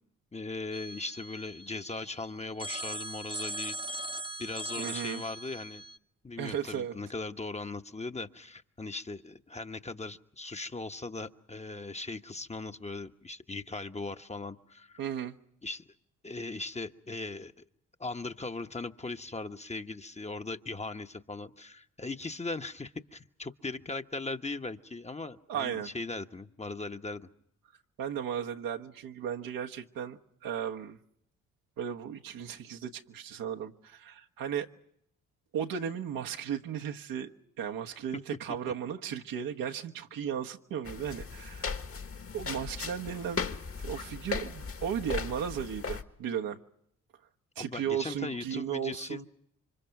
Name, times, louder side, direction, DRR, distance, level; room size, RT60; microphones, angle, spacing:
voice 1, 0.3-4.0 4.4-5.8 6.2-15.0 15.6-15.9 16.2-17.6 18.0-27.3 47.6-49.3, left 3 dB, 20° left, 1.1 m, -39 dB
Telephone, 0.7-2.1 2.6-6.0, right 1 dB, 15° right, 1.0 m, -40 dB
voice 2, 4.8-5.2 6.4-6.9 15.0-15.3 25.5-25.9 28.0-31.0 31.8-34.7 35.5-37.3 37.6-41.8 42.3-43.4 43.8-46.6 47.6-49.3, right 8 dB, 75° right, 1.4 m, -35 dB
sound 1, 40.8-46.0, left 5 dB, 40° left, 1.6 m, -37 dB
28.5 x 25.0 x 5.9 m
supercardioid pair, 55°, 34 cm